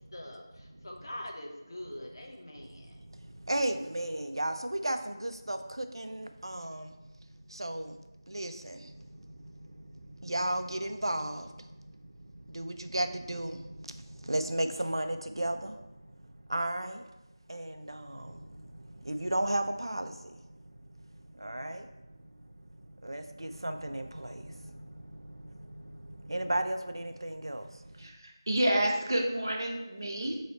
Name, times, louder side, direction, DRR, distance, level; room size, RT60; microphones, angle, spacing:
voice 1, 0.1-3.0, left 1 dB, 55° left, 1 dB, 0.8 m, -44 dB
voice 2, 0.6-1.1 2.6-17.1 17.5-28.1, right 1 dB, 75° right, 8 dB, 0.4 m, -36 dB
voice 3, 28.5-30.4, right 1 dB, 50° right, 1 dB, 0.8 m, -29 dB
4.1 x 3.2 x 4.1 m, 0.97 s
figure-of-eight pair, 170°, 2 cm